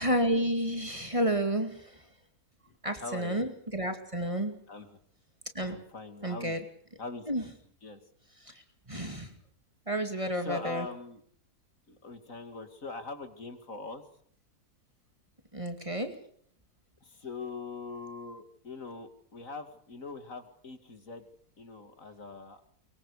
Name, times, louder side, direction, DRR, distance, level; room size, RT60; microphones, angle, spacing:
voice 1, 0.0-1.8 2.8-4.6 5.5-5.8 6.2-6.6 7.3-7.4 8.5-8.6 8.9-9.3 9.9-10.9 15.5-16.1, right 1 dB, 20° right, 6 dB, 2.4 m, -30 dB
voice 2, 3.0-3.4 4.7-4.9 5.6-6.6 7.0-7.3 7.8-8.0 10.4-11.2 11.9-14.0 17.0-21.2 21.6-22.6, left 3 dB, 55° left, 8 dB, 2.8 m, -42 dB
23.5 x 23.0 x 6.7 m, 0.62 s
omnidirectional pair, 1.7 m